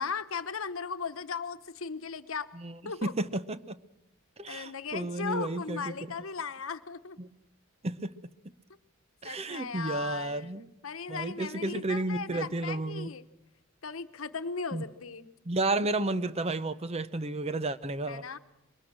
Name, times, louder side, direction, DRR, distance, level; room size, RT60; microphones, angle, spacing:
voice 1, 0.0-2.5 2.8-3.1 4.5-7.2 9.2-13.2 13.8-15.3 18.1-18.4, left 5 dB, 80° left, 1.1 m, -37 dB
voice 2, 3.0-3.8 4.4-6.1 7.2-7.3 7.8-8.1 9.2-10.7 11.1-13.1 14.7-14.8 15.5-18.3, right 2 dB, 30° right, 0.7 m, -32 dB
22.0 x 19.0 x 7.6 m
head